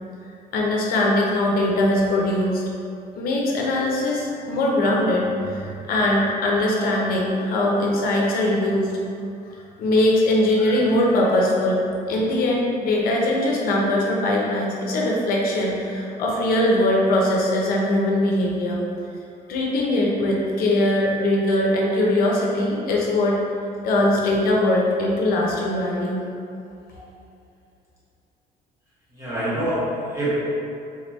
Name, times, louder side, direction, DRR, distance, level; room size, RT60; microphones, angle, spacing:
voice 1, 0.5-2.6 3.2-8.9 9.8-11.8 12.1-18.8 19.5-23.4 23.8-26.3, left 1 dB, 65° left, -2 dB, 0.6 m, -21 dB
voice 2, 29.1-30.5, right 1 dB, 20° right, -9 dB, 1.1 m, -25 dB
3.5 x 3.3 x 3.0 m, 2.5 s
cardioid pair, 170°, 16 cm